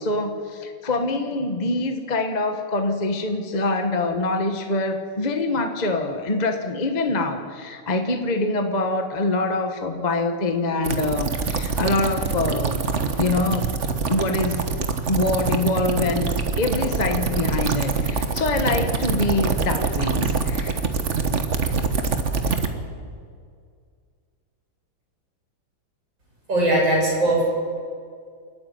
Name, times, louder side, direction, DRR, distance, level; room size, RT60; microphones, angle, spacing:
voice 1, 0.0-12.9 13.2-13.7 14.1-16.3 16.6-20.8, left 2 dB, 25° left, 5 dB, 1.4 m, -25 dB
sound 1, 10.8-22.7, right 5 dB, 40° right, 1.5 m, -24 dB
voice 2, 26.5-27.4, right 1 dB, 75° right, -4 dB, 7.8 m, -19 dB
28.5 x 9.7 x 9.4 m, 2.1 s
omnidirectional pair, 2.1 m